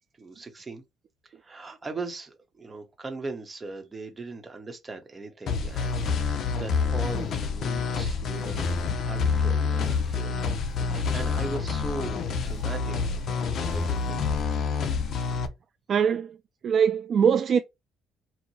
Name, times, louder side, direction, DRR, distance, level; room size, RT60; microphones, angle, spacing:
voice 1, 0.2-0.8 1.2-8.7 9.0-10.4 10.9-14.2, right 3 dB, 20° right, 0.9 m, -39 dB
sound 1, 5.5-15.5, left 5 dB, 50° left, 0.7 m, -27 dB
voice 2, 15.9-16.4 16.6-17.6, right 7 dB, 45° right, 0.4 m, -22 dB
4.5 x 2.1 x 4.1 m
cardioid pair, 140°, 0 cm